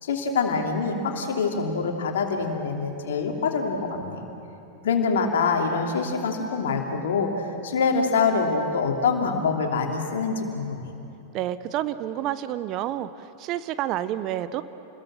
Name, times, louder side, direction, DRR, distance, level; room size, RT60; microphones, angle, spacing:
voice 1, 0.0-4.2 4.8-10.9, left 4 dB, 60° left, 2 dB, 2.9 m, -25 dB
voice 2, 11.3-14.6, right 12 dB, 40° right, 13 dB, 0.8 m, -29 dB
29.0 x 21.0 x 7.5 m, 2.9 s
figure-of-eight pair, 90°, 0 cm